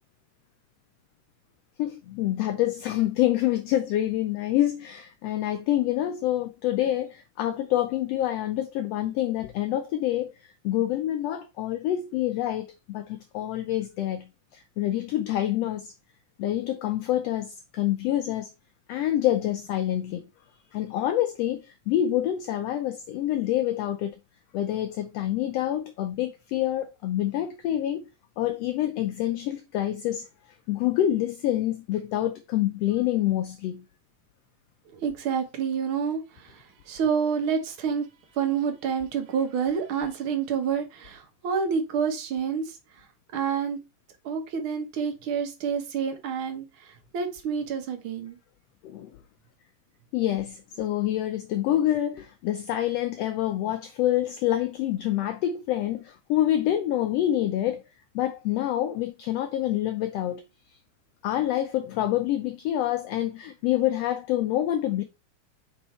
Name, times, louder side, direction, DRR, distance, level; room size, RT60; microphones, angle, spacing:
voice 1, 1.8-10.3 10.6-15.9 16.4-18.5 18.9-20.3 20.7-24.2 24.5-28.1 28.4-30.3 30.7-33.8 48.8-49.1 50.1-57.8 58.1-60.4 61.2-65.0, left 12 dB, 90° left, 1.4 m, -27 dB
voice 2, 34.9-38.1 38.3-42.8 43.3-43.8 44.2-48.4, right 6 dB, 55° right, 1.5 m, -28 dB
5.4 x 4.2 x 4.3 m
omnidirectional pair, 3.5 m